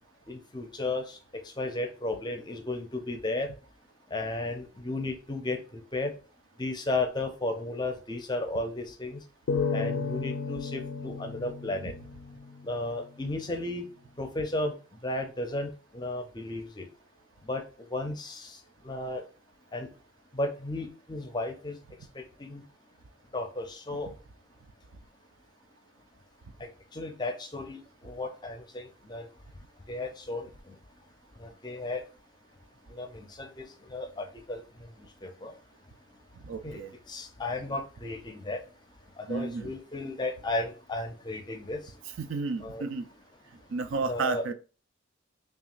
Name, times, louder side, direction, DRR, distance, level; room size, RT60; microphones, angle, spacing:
voice 1, 0.3-3.5 4.1-6.1 6.6-9.2 9.7-11.9 12.6-13.9 14.2-14.7 15.0-16.9 17.4-17.6 17.9-19.2 19.7-19.9 20.3-21.8 22.1-22.6 23.3-24.1 26.6-29.3 29.9-30.8 31.4-32.0 32.9-35.5 36.6-36.8 37.1-38.6 39.2-41.9 42.6-42.8 44.1-44.4, left 2 dB, 20° left, 0.5 m, -34 dB
sound 1, 9.5-12.9, left 4 dB, 80° left, 0.4 m, -33 dB
voice 2, 36.4-36.9 39.3-39.7 42.2-43.1 43.7-44.5, right 4 dB, 70° right, 0.4 m, -32 dB
5.7 x 2.4 x 2.4 m
head